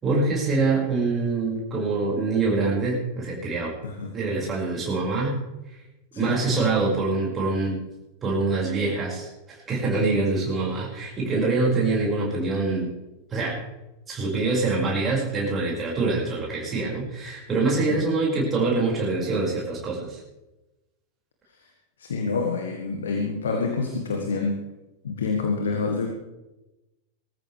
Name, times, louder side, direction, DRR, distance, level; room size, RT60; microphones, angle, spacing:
voice 1, 0.0-3.8 4.1-5.4 6.2-7.8 8.2-12.9 13.3-13.6 14.1-20.2, right 3 dB, 20° right, -4 dB, 5.8 m, -25 dB
voice 2, 22.0-24.6 25.0-26.1, left 4 dB, 65° left, 3 dB, 1.7 m, -27 dB
21.0 x 14.0 x 3.4 m, 1.0 s
figure-of-eight pair, 90°, 0 cm